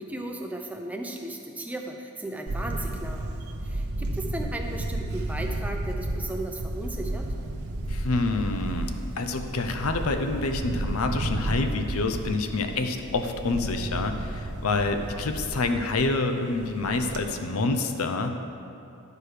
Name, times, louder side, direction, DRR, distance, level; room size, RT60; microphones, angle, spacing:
voice 1, 0.0-3.3 3.6-7.3, right 1 dB, 5° right, 2 dB, 0.5 m, -36 dB
Camera, 2.5-17.2, right 1 dB, 85° right, 0.7 m, -33 dB
voice 2, 7.9-18.4, left 3 dB, 80° left, 6 dB, 0.6 m, -27 dB
11.5 x 4.8 x 4.9 m, 2.7 s
head